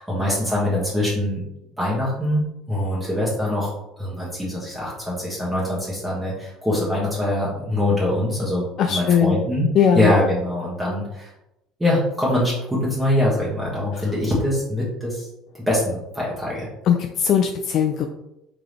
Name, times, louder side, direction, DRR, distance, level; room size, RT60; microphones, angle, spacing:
voice 1, 0.0-1.4 1.8-9.7 9.9-11.3 11.8-15.3 15.5-16.7, left 1 dB, 10° right, -6 dB, 1.5 m, -23 dB
voice 2, 8.8-9.4 9.7-10.1 16.9-18.1, left 8 dB, 55° left, 4 dB, 0.4 m, -19 dB
3.7 x 3.5 x 3.3 m, 0.86 s
supercardioid pair, 100°, 0 cm